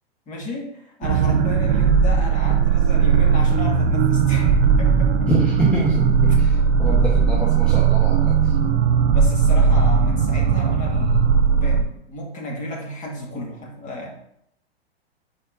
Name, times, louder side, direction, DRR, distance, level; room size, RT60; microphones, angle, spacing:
voice 1, 0.3-5.3 9.1-14.1, left 1 dB, 25° left, -1 dB, 1.8 m, -33 dB
sound 1, 1.0-11.8, right 6 dB, 65° right, 0.8 m, -18 dB
voice 2, 5.3-8.5, right 2 dB, 5° left, -4 dB, 0.9 m, -24 dB
4.8 x 4.3 x 5.2 m, 0.76 s
hypercardioid pair, 115°, 31 cm